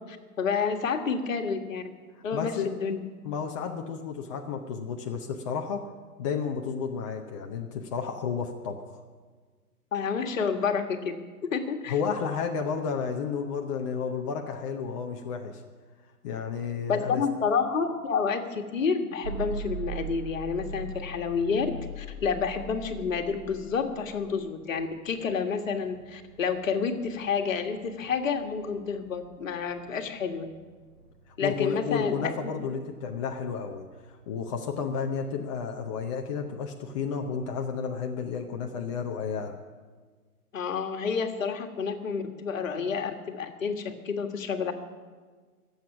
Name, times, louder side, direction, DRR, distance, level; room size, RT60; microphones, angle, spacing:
voice 1, 0.0-1.8 2.2-3.0 9.9-11.9 16.9-21.7 22.0-30.5 31.4-32.6 40.5-44.7, left 5 dB, 60° left, 6 dB, 1.7 m, -29 dB
voice 2, 2.3-2.7 3.2-5.9 6.2-9.0 11.9-15.6 16.2-17.2 31.4-39.6, left 6 dB, 20° left, 3 dB, 0.7 m, -32 dB
sound 1, 19.2-35.2, right 3 dB, 45° right, 3.3 m, -43 dB
22.0 x 8.0 x 5.9 m, 1.5 s
figure-of-eight pair, 130°, 45 cm